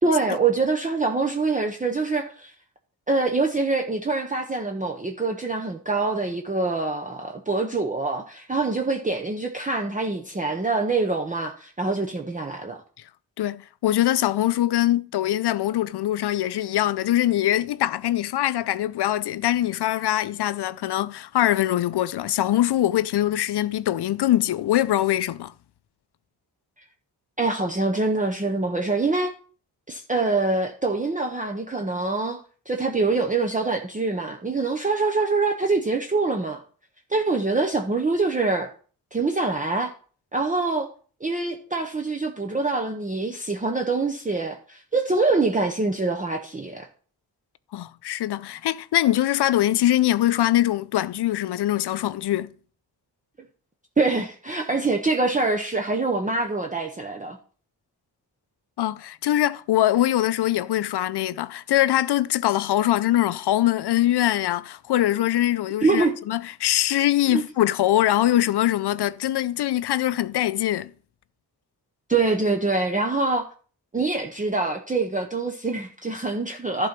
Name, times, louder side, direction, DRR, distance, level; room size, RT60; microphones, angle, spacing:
voice 1, 0.0-2.5 3.1-12.8 27.4-29.3 29.9-36.6 37.1-38.7 39.1-39.9 40.3-40.9 41.2-46.9 54.0-57.4 65.8-66.1 67.3-67.4 72.1-73.5 73.9-76.9, right 3 dB, 20° right, 0.7 m, -25 dB
voice 2, 13.4-25.5 47.7-52.5 58.8-70.9, left 13 dB, 90° left, 0.5 m, -23 dB
11.5 x 4.0 x 5.9 m
wide cardioid pair, 115°, 39 cm